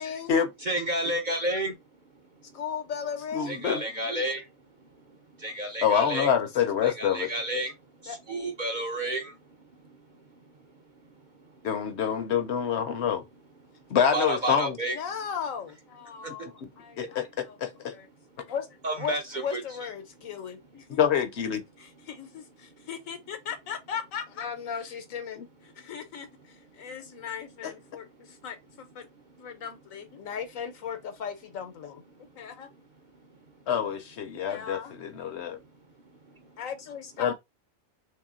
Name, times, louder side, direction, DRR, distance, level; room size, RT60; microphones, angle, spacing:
voice 1, 0.0-0.3 2.5-3.6 8.1-8.2 14.9-18.1 18.4-18.7 18.9-21.0 21.8-29.0 29.4-32.0 32.3-32.7 34.4-35.0 36.6-37.3, left 7 dB, 80° left, 1.3 m, -37 dB
voice 2, 0.6-1.7 3.5-4.5 5.4-6.3 6.8-7.7 8.0-9.4 14.1-15.0 16.2-16.5 18.8-19.6, right 1 dB, 45° right, 0.6 m, -30 dB
voice 3, 3.3-3.8 4.1-4.2 5.8-7.3 11.6-13.2 13.9-14.8 17.0-17.9 21.0-21.6 25.4-25.5 33.7-35.6 37.2-37.3, left 8 dB, 60° left, 0.9 m, -26 dB
3.3 x 2.8 x 3.6 m
omnidirectional pair, 1.4 m